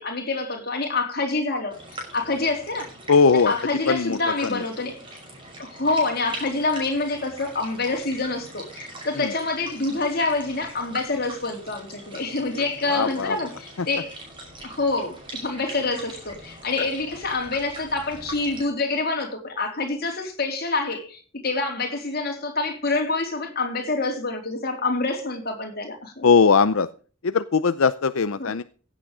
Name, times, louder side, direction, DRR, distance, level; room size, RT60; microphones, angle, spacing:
voice 1, 0.0-1.8 2.1-2.9 3.5-5.0 5.6-14.1 14.6-26.2 28.4-28.5, left 3 dB, 50° left, 3.6 m, -27 dB
sound 1, 1.7-18.6, right 1 dB, 25° right, 5.8 m, -41 dB
voice 2, 3.1-3.5 3.9-4.6 9.1-9.3 12.5-13.4 13.8-13.9 26.2-26.9 27.2-28.6, left 5 dB, 85° left, 0.6 m, -20 dB
16.0 x 8.6 x 5.0 m
head